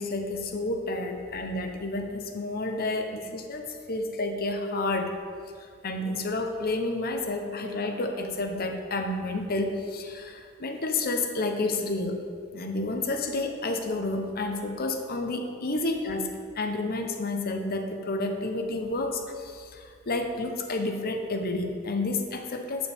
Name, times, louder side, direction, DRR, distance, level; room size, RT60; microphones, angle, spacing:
voice 1, 0.0-5.2 5.8-12.2 12.5-16.3 16.5-22.9, left 2 dB, 45° left, 5 dB, 0.8 m, -30 dB
11.0 x 7.1 x 3.5 m, 2.2 s
head